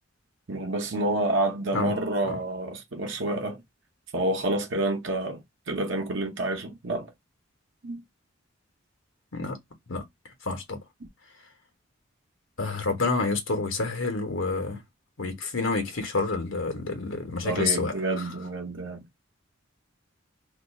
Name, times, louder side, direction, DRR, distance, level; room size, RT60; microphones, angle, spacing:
voice 1, 0.5-3.6 4.1-5.4 5.7-7.1 7.8-8.0 17.4-19.0, right 2 dB, 65° right, 0.8 m, -28 dB
voice 2, 10.4-10.8 12.6-14.8 15.2-17.9, left 3 dB, 80° left, 1.1 m, -28 dB
2.7 x 2.4 x 4.1 m
head